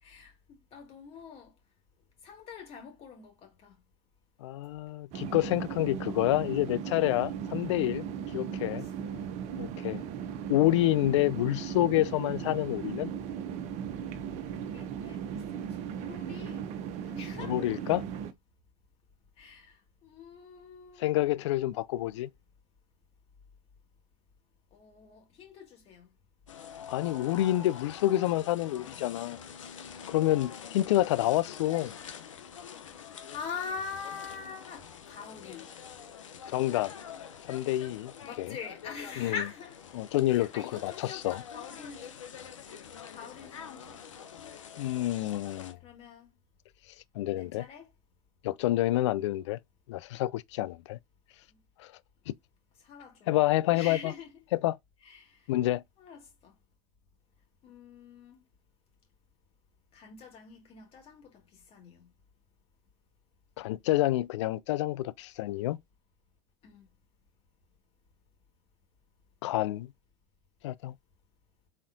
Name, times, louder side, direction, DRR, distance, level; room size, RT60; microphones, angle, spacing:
voice 1, 0.0-1.5 2.2-3.7 8.6-9.6 9.8-10.2 14.5-16.7 17.0-17.6 19.4-21.2 24.7-26.1 32.9-35.7 38.2-39.9 40.3-42.2 42.6-44.2 45.8-46.3 47.4-47.9 51.5-51.6 52.8-53.4 53.7-54.3 55.0-55.5 56.0-56.5 57.6-58.4 59.9-62.1 66.6-66.9, left 6 dB, 40° left, 2.3 m, -44 dB
voice 2, 4.4-8.0 8.3-8.8 9.6-10.0 10.5-13.1 17.4-18.1 21.0-22.3 26.9-29.4 30.1-31.9 36.5-36.9 37.5-38.1 38.4-38.6 39.2-39.3 39.9-41.4 44.8-45.8 47.2-47.6 48.4-49.6 49.9-51.0 52.3-52.4 53.3-54.1 54.5-54.8 55.5-55.8 63.6-65.8 69.4-69.9 70.6-70.9, left 15 dB, 70° left, 0.4 m, -28 dB
sound 1, 5.1-18.3, right 8 dB, 45° right, 0.7 m, -37 dB
sound 2, 26.5-45.7, left 7 dB, 90° left, 0.8 m, -46 dB
4.3 x 3.5 x 2.7 m
hypercardioid pair, 100°, 16 cm